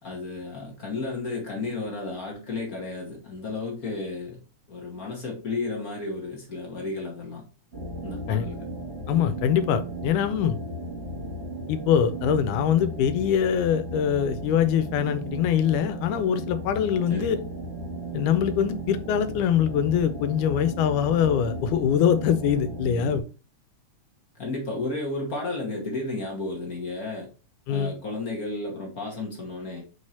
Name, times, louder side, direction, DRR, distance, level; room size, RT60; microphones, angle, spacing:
voice 1, 0.0-4.4 4.7-7.4 8.0-8.6 17.1-17.4 24.4-27.3 27.7-29.8, left 3 dB, 50° left, 1.1 m, -33 dB
sound 1, 7.7-23.2, right 1 dB, 25° right, 2.2 m, -35 dB
voice 2, 9.1-10.6 11.7-17.4 18.1-23.2 27.7-27.9, left 9 dB, 90° left, 2.1 m, -23 dB
4.9 x 4.5 x 4.2 m
omnidirectional pair, 3.5 m